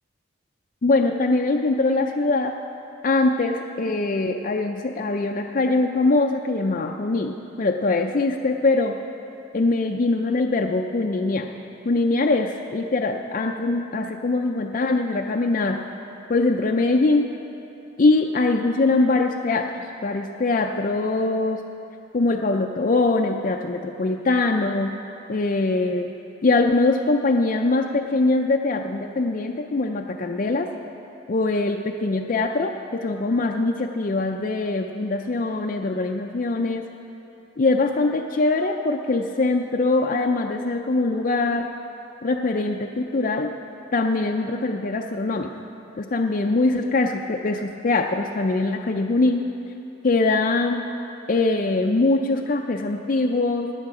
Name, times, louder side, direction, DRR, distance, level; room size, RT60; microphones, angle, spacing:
voice 1, 0.8-2.6 3.0-9.0 9.5-11.5 11.8-15.8 16.3-17.3 18.0-19.7 20.0-21.6 22.1-24.9 25.3-26.1 26.4-30.7 31.3-36.9 37.6-41.7 42.2-43.5 43.9-45.5 46.0-49.5 50.0-50.8 51.3-53.7, left 3 dB, 40° left, 2 dB, 0.4 m, -22 dB
17.0 x 9.8 x 4.9 m, 2.9 s
head